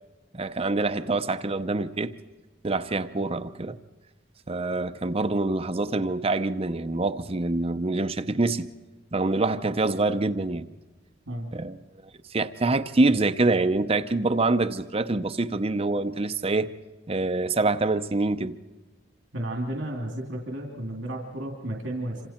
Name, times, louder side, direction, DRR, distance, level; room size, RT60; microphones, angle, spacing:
voice 1, 0.3-2.1 2.6-3.8 4.5-8.7 9.1-10.7 11.5-11.8 12.3-16.7 17.1-18.6, right 2 dB, 30° right, 0.7 m, -25 dB
voice 2, 19.3-22.2, right 1 dB, 75° right, 2.8 m, -32 dB
27.5 x 26.5 x 4.4 m
head